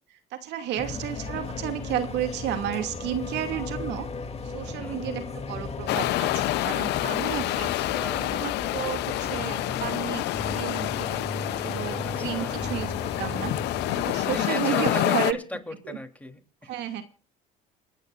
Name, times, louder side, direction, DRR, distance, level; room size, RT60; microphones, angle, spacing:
voice 1, 0.1-4.1 4.4-7.7 8.3-11.3 11.6-15.4 15.8-16.0 16.6-17.0, right 11 dB, 70° right, 6 dB, 2.5 m, -32 dB
sound 1, 0.8-14.4, left 3 dB, 35° left, 2.9 m, -35 dB
voice 2, 4.6-5.0 7.5-8.3 12.0-12.5 14.2-16.7, left 1 dB, 10° left, 5 dB, 3.4 m, -38 dB
sound 2, 5.9-15.3, left 16 dB, 65° left, 0.7 m, -28 dB
29.0 x 9.7 x 2.6 m, 0.40 s
supercardioid pair, 75°, 19 cm